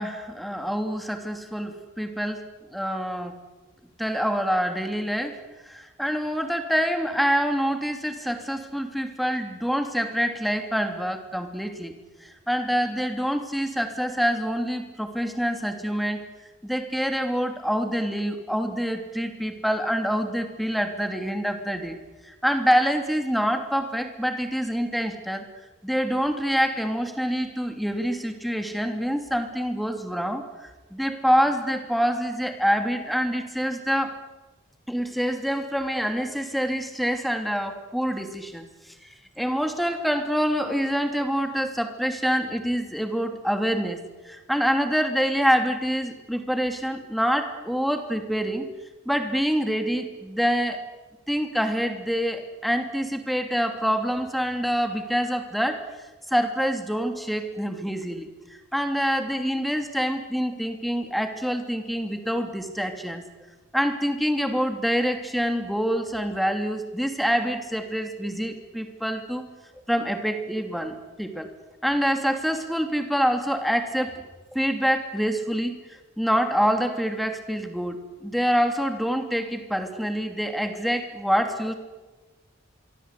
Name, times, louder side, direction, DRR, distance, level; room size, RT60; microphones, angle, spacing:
voice 1, 0.0-2.4 2.7-3.3 4.0-5.4 5.7-11.9 12.2-16.2 16.6-22.0 22.2-25.4 25.8-34.2 34.9-38.7 39.4-48.7 49.0-50.8 51.3-55.9 56.3-58.3 58.7-63.2 63.7-69.4 69.9-71.5 71.8-74.2 74.5-75.7 76.2-81.7, equal, ahead, 6 dB, 2.8 m, -26 dB
26.5 x 23.5 x 8.4 m, 1.2 s
head